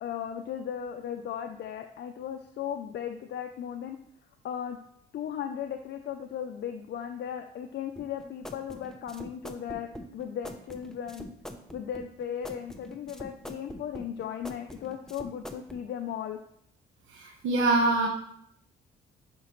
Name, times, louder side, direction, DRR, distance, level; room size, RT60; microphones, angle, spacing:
voice 1, 0.0-4.0 4.4-4.8 5.1-11.3 11.7-16.4, left 9 dB, 60° left, 6 dB, 0.6 m, -36 dB
sound 1, 8.0-15.8, equal, 5° left, 0.8 m, -43 dB
voice 2, 17.1-18.1, right 2 dB, 80° right, 2 dB, 1.2 m, -24 dB
9.9 x 5.0 x 3.1 m, 0.71 s
cardioid pair, 90°, 20 cm